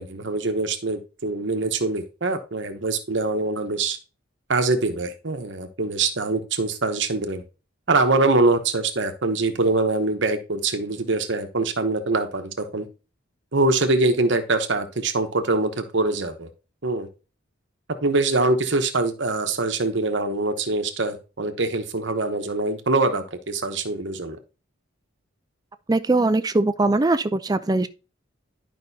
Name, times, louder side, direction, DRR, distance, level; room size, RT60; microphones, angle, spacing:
voice 1, 0.0-4.0 4.5-7.4 7.9-12.8 13.5-16.5 16.8-17.1 18.0-24.4, right 3 dB, 60° right, 1.0 m, -23 dB
voice 2, 25.9-27.9, right 2 dB, 20° right, 0.4 m, -21 dB
11.0 x 5.3 x 2.7 m
head